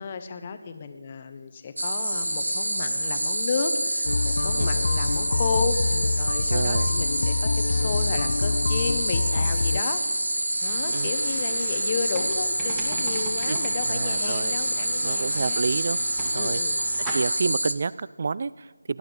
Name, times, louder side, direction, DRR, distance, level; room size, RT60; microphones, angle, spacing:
voice 1, 0.0-10.0 10.6-15.6 16.3-16.8, left 5 dB, 25° left, 9 dB, 1.0 m, -32 dB
sound 1, 1.8-17.7, right 1 dB, 75° right, 1.0 m, -27 dB
sound 2, 4.1-9.8, left 3 dB, 45° left, 0.3 m, -26 dB
voice 2, 6.5-7.0 10.9-11.1 13.4-13.6 13.8-14.5 15.0-16.0 16.3-16.6 17.1-19.0, right 4 dB, 40° right, 19 dB, 0.3 m, -29 dB
sound 3, 10.6-17.1, right 2 dB, 10° right, 1.6 m, -40 dB
17.5 x 11.5 x 5.1 m, 1.3 s
figure-of-eight pair, 160°, 0 cm